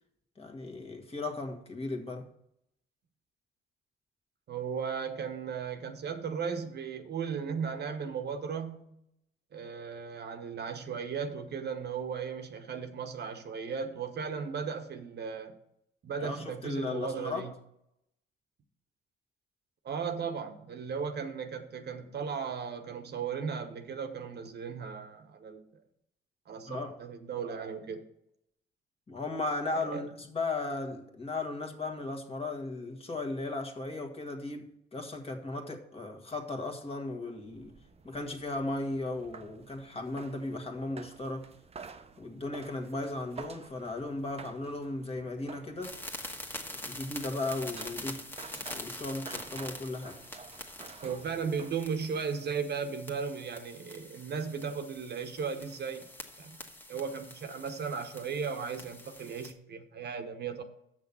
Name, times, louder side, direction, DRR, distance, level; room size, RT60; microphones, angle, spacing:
voice 1, 0.4-2.3 16.2-17.5 26.7-26.9 29.1-37.7 38.0-41.5 42.2-46.0 46.8-48.3 48.7-50.2, left 2 dB, 30° left, 1.5 m, -36 dB
voice 2, 4.5-8.9 9.5-15.6 16.0-17.5 19.8-25.6 26.5-28.0 29.7-30.0 51.0-56.1 56.4-56.6 56.9-60.6, right 6 dB, 55° right, 1.1 m, -36 dB
sound 1, 37.4-52.3, right 5 dB, 30° right, 0.7 m, -51 dB
sound 2, 45.8-59.5, left 1 dB, 10° left, 1.3 m, -45 dB
7.0 x 6.1 x 7.0 m
cardioid pair, 90°, 20 cm